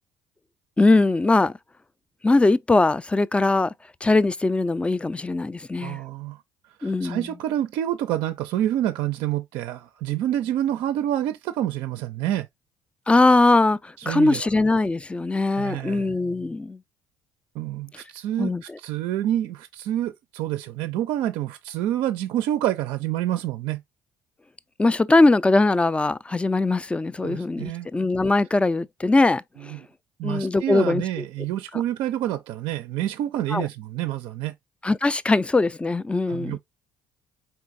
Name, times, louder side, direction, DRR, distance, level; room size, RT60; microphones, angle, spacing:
voice 1, 0.8-1.5 2.2-3.7 4.0-6.0 6.8-7.3 13.1-16.8 18.4-18.8 24.8-29.7 30.2-31.2 33.5-33.7 34.8-36.6, left 2 dB, 10° left, 0.3 m, -21 dB
voice 2, 5.8-6.4 6.8-12.5 14.0-14.5 15.6-16.1 17.5-23.8 27.2-27.9 29.6-29.9 30.2-34.5 36.3-36.6, right 12 dB, 60° right, 0.4 m, -28 dB
4.5 x 3.8 x 2.6 m
figure-of-eight pair, 50°, 9 cm